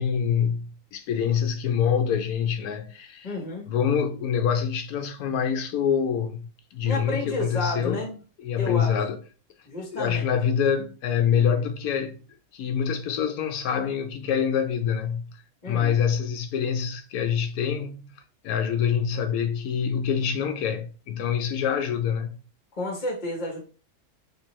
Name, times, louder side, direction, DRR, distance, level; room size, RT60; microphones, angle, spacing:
voice 1, 0.0-3.4 3.7-8.0 8.4-9.2 9.8-12.2 12.5-15.4 15.7-18.1 18.4-22.4, left 7 dB, 80° left, 1.1 m, -26 dB
voice 2, 3.2-3.7 6.8-8.1 8.6-8.9 9.7-10.3 15.6-16.0 22.7-23.6, left 2 dB, 30° left, 1.1 m, -31 dB
4.3 x 3.6 x 3.0 m
omnidirectional pair, 1.5 m